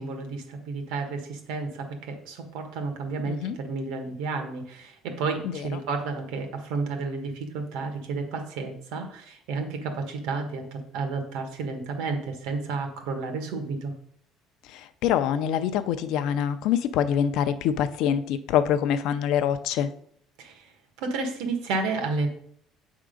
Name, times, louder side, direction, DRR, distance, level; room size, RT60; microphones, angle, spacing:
voice 1, 0.0-13.9 20.4-20.7 21.0-22.3, right 4 dB, 80° right, 4 dB, 1.4 m, -31 dB
voice 2, 3.2-3.6 5.4-5.8 14.6-19.9, left 9 dB, 60° left, 11 dB, 0.5 m, -25 dB
7.7 x 3.7 x 5.0 m, 0.66 s
cardioid pair, 175°, 0 cm